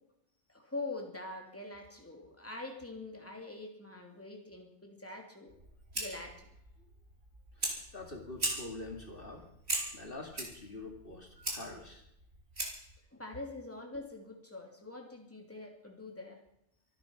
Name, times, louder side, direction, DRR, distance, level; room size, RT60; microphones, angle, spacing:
voice 1, 0.5-5.5 5.9-6.5 13.1-16.4, left 2 dB, 10° left, 1 dB, 2.9 m, -44 dB
Fire, 5.5-13.0, right 1 dB, 65° right, 4.1 m, -40 dB
voice 2, 7.6-9.4 9.9-12.0, left 2 dB, 50° left, 2 dB, 2.4 m, -45 dB
25.0 x 9.9 x 5.7 m, 0.77 s
omnidirectional pair, 1.2 m